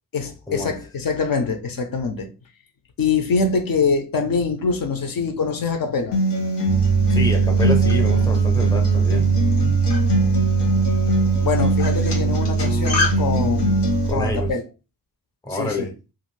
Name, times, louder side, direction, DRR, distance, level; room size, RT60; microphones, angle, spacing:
voice 1, 0.1-2.3 3.0-6.2 11.4-13.8 14.1-14.6 15.5-15.9, left 4 dB, 60° left, 0.5 m, -24 dB
Acoustic guitar, 6.1-14.1, left 1 dB, 90° left, 0.9 m, -23 dB
sound 1, 6.7-14.5, right 6 dB, 45° right, 0.4 m, -21 dB
voice 2, 7.1-9.3 14.0-14.5 15.4-15.9, left 2 dB, 10° left, 0.5 m, -27 dB
2.5 x 2.4 x 3.1 m
wide cardioid pair, 165°, 40 cm